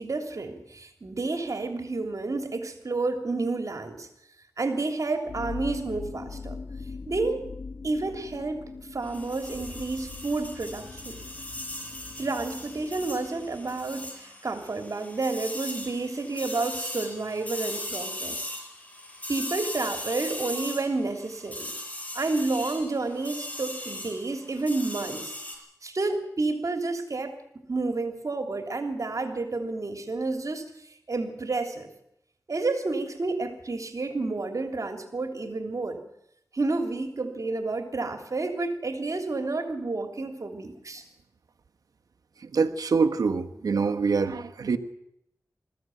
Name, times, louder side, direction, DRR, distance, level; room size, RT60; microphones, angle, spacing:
voice 1, 0.0-4.1 4.6-6.6 7.1-7.5 7.8-8.6 8.9-11.2 12.2-18.5 19.3-21.7 22.1-25.3 25.8-27.3 27.7-31.9 32.5-36.0 36.5-41.0, right 3 dB, 60° right, 6 dB, 3.1 m, -30 dB
sound 1, 5.3-14.0, left 4 dB, 60° left, 2.5 m, -41 dB
sound 2, 9.0-25.6, left 1 dB, 25° left, 7.0 m, -39 dB
voice 2, 42.4-44.8, right 4 dB, 90° right, 7 dB, 1.2 m, -25 dB
21.0 x 15.0 x 9.2 m, 0.79 s
cardioid pair, 45°, 6 cm